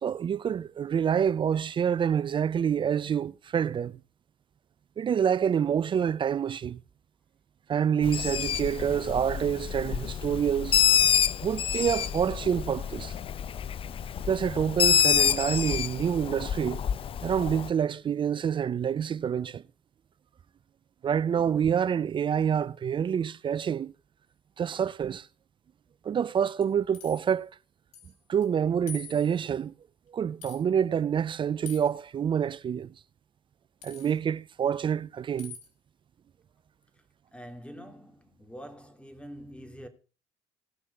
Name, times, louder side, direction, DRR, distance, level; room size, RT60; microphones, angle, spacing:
voice 1, 0.0-4.0 5.0-6.8 7.7-10.8 11.4-13.1 14.3-16.8 17.2-19.6 21.0-23.9 24.6-25.3 26.0-27.5 28.3-29.7 30.1-32.9 33.8-35.5, right 8 dB, 40° right, 0.5 m, -27 dB
Bird, 8.0-17.7, left 9 dB, 45° left, 0.6 m, -27 dB
sound 1, 26.6-27.3 27.9-28.1 28.4-28.5 28.9-29.5 30.4-30.6 31.7-32.0 33.8-34.2 35.4-35.7, left 7 dB, 65° left, 4.8 m, -45 dB
voice 2, 37.3-39.9, equal, 10° left, 3.1 m, -45 dB
18.5 x 6.2 x 5.5 m
hypercardioid pair, 65°, 13 cm